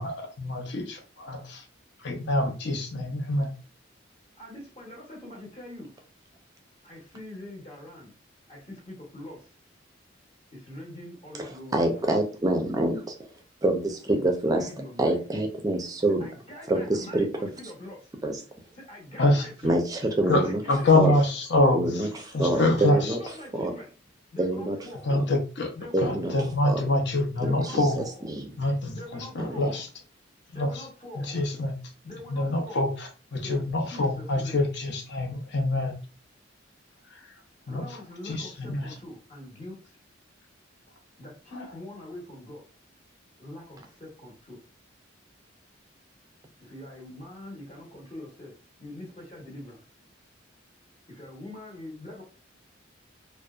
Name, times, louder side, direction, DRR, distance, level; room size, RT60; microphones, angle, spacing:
voice 1, 0.0-1.6 2.0-3.5 19.2-19.5 20.3-20.4 20.7-22.1 22.3-23.2 25.0-25.7 26.0-28.0 28.6-29.9 30.6-30.8 31.2-31.8 32.3-35.9 37.1-37.3 37.7-38.0 38.2-38.9 41.5-41.7, left 2 dB, 60° left, 2 dB, 0.6 m, -26 dB
voice 2, 4.4-5.9 6.8-8.1 8.5-9.5 10.5-12.1 14.1-15.2 16.2-18.1 18.7-19.9 20.4-21.2 22.5-23.9 24.3-25.1 25.7-26.6 27.4-28.2 28.9-29.8 30.5-31.4 32.0-32.9 33.4-34.7 37.7-40.0 41.2-42.7 43.4-44.6 46.6-48.5 48.8-49.8 51.1-52.2, left 1 dB, 30° left, -2 dB, 0.8 m, -43 dB
voice 3, 11.4-13.2 13.6-14.7 15.0-16.3 16.7-17.3 18.2-18.4 19.6-20.6 20.9-21.2 21.7-23.2 23.5-23.7 24.4-24.8 25.9-26.3 26.6-26.8 27.4-27.8 28.3-28.5 29.4-29.7, right 1 dB, 20° right, 3 dB, 0.4 m, -26 dB
2.6 x 2.1 x 2.3 m, 0.36 s
head